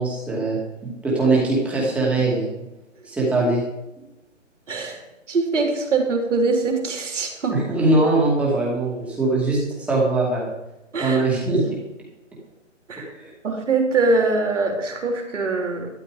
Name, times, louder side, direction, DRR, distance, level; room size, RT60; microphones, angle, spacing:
voice 1, 0.0-2.5 3.0-3.6 7.5-9.6 9.9-10.5 11.0-11.8 13.1-13.3, right 2 dB, 5° right, -4 dB, 2.4 m, -21 dB
voice 2, 4.7-7.6 10.9-11.2 12.9-13.1 13.4-15.9, right 3 dB, 70° right, 3 dB, 3.6 m, -23 dB
13.0 x 11.0 x 5.0 m, 0.98 s
hypercardioid pair, 165°, 38 cm